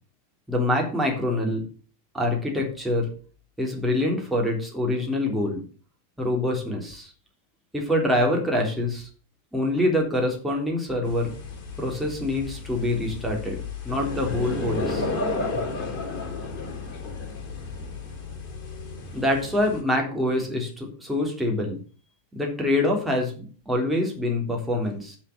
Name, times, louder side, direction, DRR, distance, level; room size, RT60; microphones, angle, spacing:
voice 1, 0.5-1.6 2.1-3.1 3.6-5.6 6.2-7.1 7.7-9.1 9.5-11.3 11.8-15.1 19.1-21.8 22.3-25.2, left 1 dB, 5° right, -1 dB, 3.5 m, -25 dB
sound 1, 11.0-19.8, left 3 dB, 35° left, 4.8 m, -33 dB
10.5 x 5.8 x 6.8 m, 0.40 s
figure-of-eight pair, 90°, 0 cm